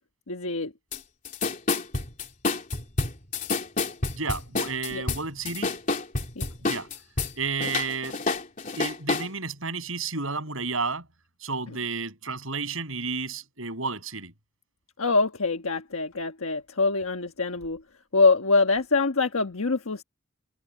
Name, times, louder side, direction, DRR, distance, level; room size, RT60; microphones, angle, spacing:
voice 1, 0.3-0.7 4.9-5.1 6.3-6.5 15.0-17.8 18.1-20.0, left 3 dB, 80° left, 1.4 m, -24 dB
sound 1, 0.9-1.0 1.2-7.3 7.6-9.3, left 3 dB, 35° left, 3.3 m, -28 dB
voice 2, 4.1-5.7 6.6-6.9 7.4-8.2 8.8-11.1 11.4-14.3, right 4 dB, 70° right, 7.9 m, -31 dB
head